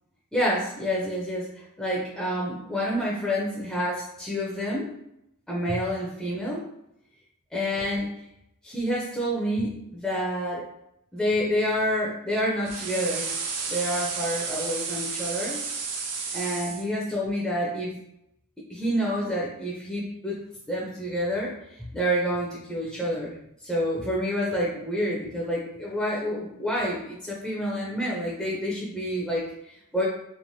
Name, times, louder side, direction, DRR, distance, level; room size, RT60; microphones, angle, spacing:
voice 1, 0.3-5.0 5.5-6.7 7.5-8.2 8.6-10.7 11.1-13.3 13.7-15.6 16.3-18.0 18.7-20.4 20.7-23.4 23.6-30.1, equal, ahead, -5 dB, 0.5 m, -28 dB
sound 1, 12.7-16.8, right 5 dB, 85° right, 0.5 m, -32 dB
3.1 x 2.1 x 2.6 m, 0.80 s
head